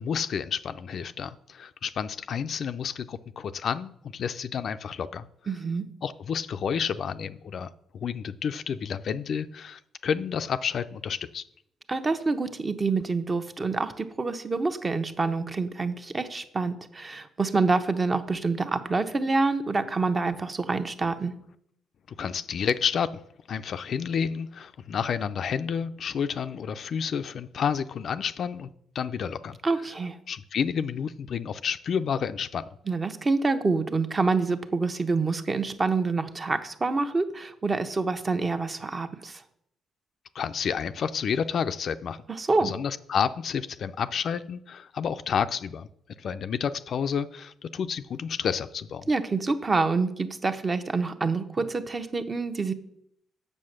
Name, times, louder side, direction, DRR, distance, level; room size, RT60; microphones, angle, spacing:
voice 1, 0.0-5.3 6.0-11.4 22.2-23.1 23.5-28.7 28.9-29.6 30.3-32.6 40.3-42.2 42.6-45.9 46.2-49.1, left 7 dB, 60° left, 11 dB, 0.5 m, -30 dB
voice 2, 5.5-5.9 11.9-21.3 29.6-30.2 32.9-39.4 42.3-42.7 49.1-52.7, right 3 dB, 30° right, 8 dB, 0.9 m, -27 dB
7.6 x 6.7 x 6.5 m, 0.72 s
cardioid pair, 90°, 0 cm